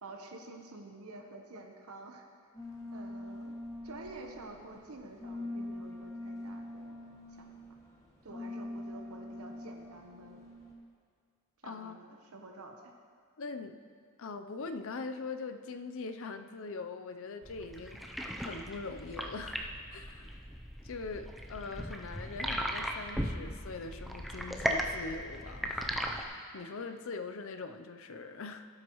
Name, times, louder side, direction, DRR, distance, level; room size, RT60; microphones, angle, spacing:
voice 1, 0.0-2.2 2.9-3.5 3.8-7.0 7.4-7.6 8.2-10.4 11.6-12.9, right 2 dB, 80° right, 3 dB, 1.0 m, -49 dB
sound 1, 2.5-10.7, left 1 dB, 15° left, 1.4 m, -44 dB
voice 2, 11.6-12.0 13.4-13.8 14.2-20.5 20.8-28.7, left 4 dB, 60° left, 8 dB, 0.6 m, -42 dB
sound 2, 17.4-26.2, equal, ahead, 0.5 m, -37 dB
17.5 x 7.9 x 3.1 m, 2.1 s
head